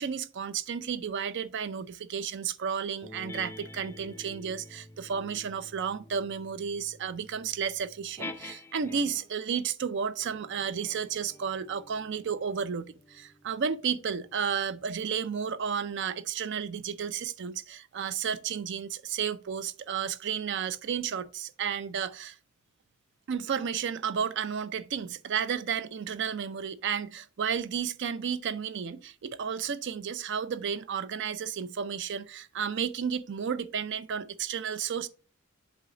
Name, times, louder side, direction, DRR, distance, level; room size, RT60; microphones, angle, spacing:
voice 1, 0.0-22.4 23.3-35.1, right 7 dB, 55° right, 0.4 m, -32 dB
sound 1, 3.0-9.4 10.2-15.1, left 2 dB, 10° left, 0.4 m, -48 dB
7.2 x 3.9 x 3.8 m
head